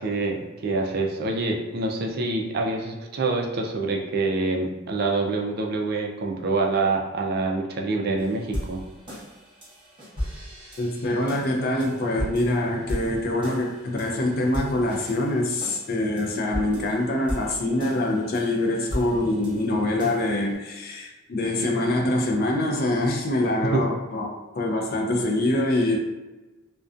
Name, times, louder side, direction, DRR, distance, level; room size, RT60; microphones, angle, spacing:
voice 1, 0.0-8.8 23.7-23.8, right 3 dB, 50° right, 1 dB, 0.3 m, -26 dB
sound 1, 8.2-20.6, equal, 25° right, 0.8 m, -37 dB
voice 2, 10.8-26.0, left 1 dB, 45° left, 1 dB, 0.4 m, -25 dB
2.5 x 2.2 x 2.4 m, 1.2 s
head